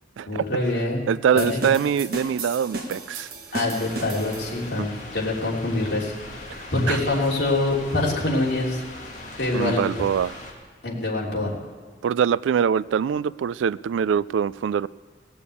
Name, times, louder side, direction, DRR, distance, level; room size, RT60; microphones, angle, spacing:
voice 1, 0.3-1.0 1.3-1.6 3.5-6.1 6.7-8.8 9.4-9.9 10.8-11.5, left 2 dB, 65° left, -4 dB, 3.2 m, -25 dB
voice 2, 1.1-3.3 4.8-4.9 6.9-7.0 9.5-10.4 12.0-14.9, right 7 dB, 85° right, 20 dB, 0.3 m, -23 dB
sound 1, 1.4-4.8, right 2 dB, 50° right, 1.6 m, -34 dB
sound 2, 3.7-10.5, left 2 dB, 40° left, 2.3 m, -40 dB
18.5 x 7.1 x 8.4 m, 1.5 s
head